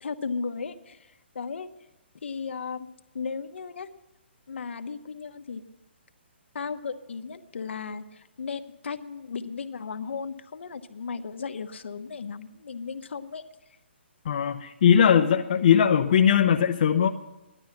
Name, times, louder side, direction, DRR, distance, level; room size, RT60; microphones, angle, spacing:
voice 1, 0.0-1.7 2.2-2.9 3.1-3.9 4.5-5.6 6.5-13.4, left 5 dB, 75° left, 9 dB, 1.1 m, -35 dB
voice 2, 14.2-17.1, left 8 dB, 45° left, 4 dB, 0.8 m, -20 dB
17.0 x 12.0 x 5.9 m, 1.0 s
hypercardioid pair, 170°, 6 cm